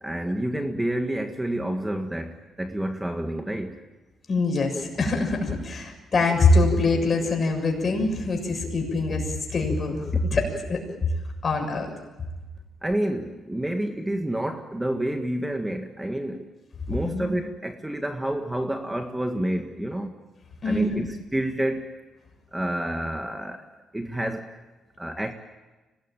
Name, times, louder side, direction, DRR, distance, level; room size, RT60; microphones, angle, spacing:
voice 1, 0.0-3.8 12.8-16.5 16.9-20.1 20.6-21.9 22.5-23.6 23.9-24.5 25.0-25.3, right 1 dB, 10° right, 5 dB, 1.7 m, -29 dB
voice 2, 4.3-10.8 11.4-11.9 17.0-17.3 20.6-21.1, left 3 dB, 40° left, 2 dB, 6.8 m, -24 dB
25.0 x 19.5 x 9.0 m, 1.1 s
cardioid pair, 90°, 0 cm